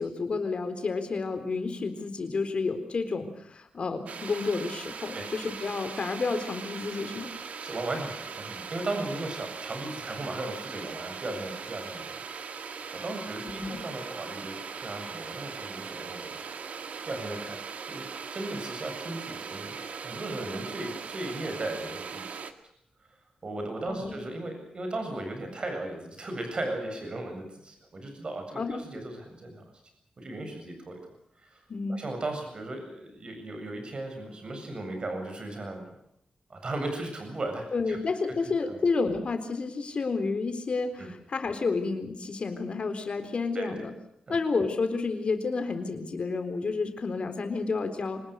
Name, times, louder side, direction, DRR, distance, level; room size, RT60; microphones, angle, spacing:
voice 1, 0.0-7.3 13.6-13.8 23.9-24.2 28.6-28.8 31.7-32.1 37.7-43.9 44.3-48.2, left 4 dB, 50° left, 7 dB, 4.1 m, -30 dB
sound 1, 4.1-22.5, right 6 dB, 70° right, 2.0 m, -40 dB
voice 2, 7.6-12.2 12.9-16.5 17.0-19.8 20.0-22.3 23.4-29.6 30.2-31.0 31.4-31.6 31.9-35.8 36.5-38.0 38.4-38.8 41.0-41.1 43.5-43.7 44.3-44.4, right 2 dB, 40° right, 5 dB, 7.8 m, -36 dB
26.0 x 20.0 x 6.5 m, 0.76 s
wide cardioid pair, 125°, 2 cm